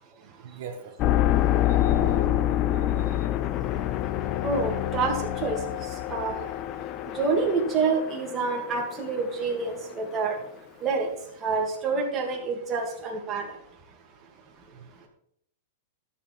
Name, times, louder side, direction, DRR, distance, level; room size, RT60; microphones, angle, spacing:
voice 1, 0.2-0.9 1.7-3.3 14.7-14.9, right 6 dB, 65° right, 3 dB, 1.4 m, -41 dB
sound 1, 1.0-10.1, left 13 dB, 35° left, 0.5 m, -27 dB
voice 2, 4.4-5.6 6.1-6.3 7.1-10.4 10.8-11.1 11.4-13.5, right 4 dB, 25° right, 0 dB, 2.3 m, -27 dB
12.0 x 7.3 x 4.6 m, 0.69 s
supercardioid pair, 150°, 0 cm